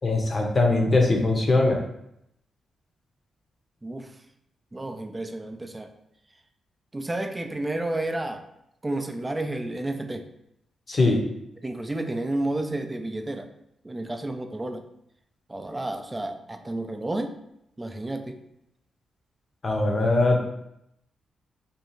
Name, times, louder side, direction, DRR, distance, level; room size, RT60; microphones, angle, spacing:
voice 1, 0.0-1.8 10.9-11.2 19.6-20.4, left 2 dB, 40° left, 1 dB, 0.6 m, -21 dB
voice 2, 3.8-4.1 4.7-5.9 6.9-8.4 8.8-10.3 11.6-13.5 13.8-14.8 15.5-17.3 17.8-18.4, right 1 dB, 20° right, 7 dB, 0.3 m, -31 dB
2.6 x 2.3 x 3.0 m, 0.79 s
cardioid pair, 70°, 0 cm